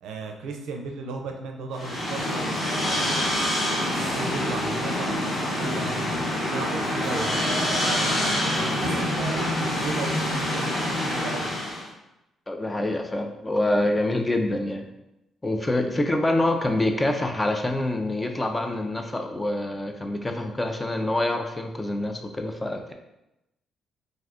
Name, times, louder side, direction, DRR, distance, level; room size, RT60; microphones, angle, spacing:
voice 1, 0.0-3.4 4.0-8.3 8.7-11.5, right 4 dB, 85° right, 3 dB, 0.4 m, -36 dB
sound 1, 1.7-11.9, left 1 dB, 50° left, 1.1 m, -26 dB
voice 2, 12.5-14.9 15.4-22.9, left 1 dB, 15° left, 5 dB, 0.4 m, -26 dB
2.5 x 2.4 x 3.4 m, 0.91 s
cardioid pair, 90°, 0 cm